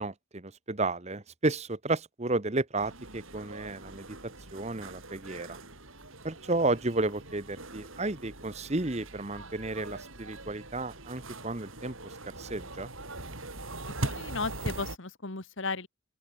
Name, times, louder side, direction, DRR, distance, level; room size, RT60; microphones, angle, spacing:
voice 1, 0.0-4.2 4.5-5.6 6.2-12.9, right 2 dB, 30° right, 1.1 m, -32 dB
sound 1, 2.8-15.0, right 2 dB, 65° right, 6.8 m, -42 dB
voice 2, 14.0-15.9, left 3 dB, 60° left, 1.7 m, -35 dB
open air
head